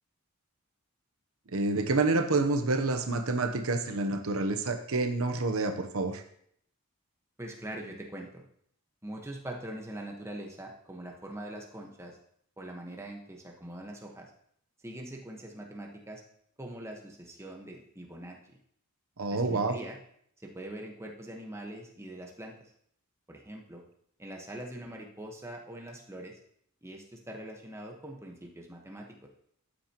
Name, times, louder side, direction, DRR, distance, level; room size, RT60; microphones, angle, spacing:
voice 1, 1.5-6.2 19.2-19.8, right 3 dB, 75° right, 7 dB, 0.9 m, -28 dB
voice 2, 7.4-8.4 9.0-12.2 12.6-14.3 14.8-16.2 16.6-18.6 19.3-20.0 20.4-22.7 23.3-23.8 24.2-26.4 26.8-29.3, right 1 dB, 10° right, 0 dB, 1.2 m, -43 dB
12.5 x 8.6 x 3.0 m, 0.67 s
head